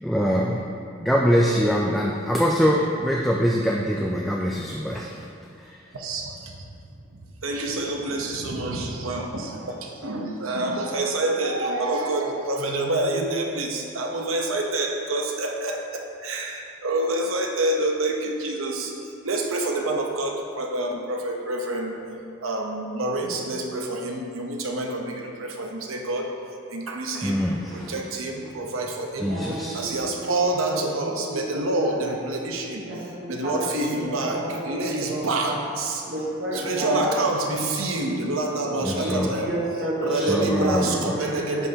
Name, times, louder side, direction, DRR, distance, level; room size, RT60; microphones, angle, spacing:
voice 1, 0.0-0.6 1.0-5.1 27.2-27.9 29.2-29.9 38.8-39.3 40.1-41.2, equal, ahead, -3 dB, 0.3 m, -23 dB
voice 2, 5.9-6.6 7.1-18.9 19.2-21.9 22.4-26.3 26.7-32.8 33.3-36.0 36.5-39.5 40.0-41.7, right 2 dB, 90° right, 1 dB, 0.9 m, -27 dB
voice 3, 29.3-30.0 30.2-30.4 31.0-32.0 32.9-35.6 36.1-37.2 39.0-40.9 41.2-41.7, right 1 dB, 60° right, -8 dB, 1.2 m, -31 dB
9.7 x 5.5 x 2.9 m, 2.6 s
head